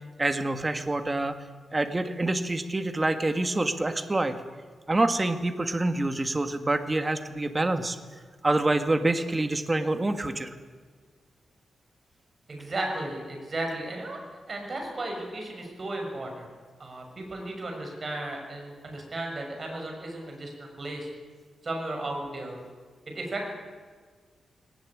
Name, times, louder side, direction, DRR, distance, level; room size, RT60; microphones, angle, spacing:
voice 1, 0.2-1.4 1.7-4.3 4.9-8.0 8.4-10.5, right 2 dB, 20° right, 8 dB, 1.6 m, -26 dB
voice 2, 12.5-16.5 16.8-21.1 21.6-22.6 23.1-23.6, right 2 dB, 35° right, 1 dB, 6.6 m, -35 dB
20.0 x 18.5 x 9.9 m, 1.5 s
wide cardioid pair, 150°, 0 cm